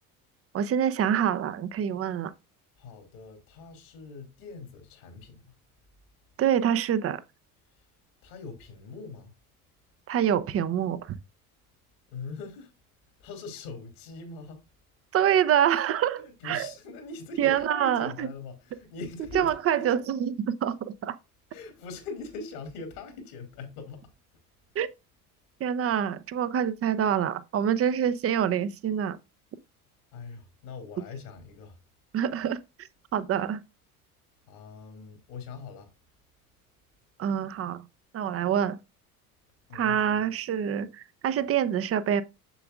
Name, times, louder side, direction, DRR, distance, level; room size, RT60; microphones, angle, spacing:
voice 1, 0.5-2.3 6.4-7.2 10.1-11.1 15.1-16.7 17.4-18.3 19.3-20.7 21.0-21.2 24.8-24.9 25.6-29.2 32.1-32.6 33.1-33.6 37.2-37.8 38.1-38.8 39.7-42.2, right 9 dB, 30° right, 0.7 m, -26 dB
voice 2, 2.8-5.4 8.2-9.3 12.1-12.7 13.2-14.6 16.2-19.9 21.5-24.0 30.1-31.8 34.5-35.9 39.7-40.2, left 3 dB, 65° left, 2.7 m, -41 dB
7.0 x 6.8 x 2.5 m
hypercardioid pair, 65°, 45 cm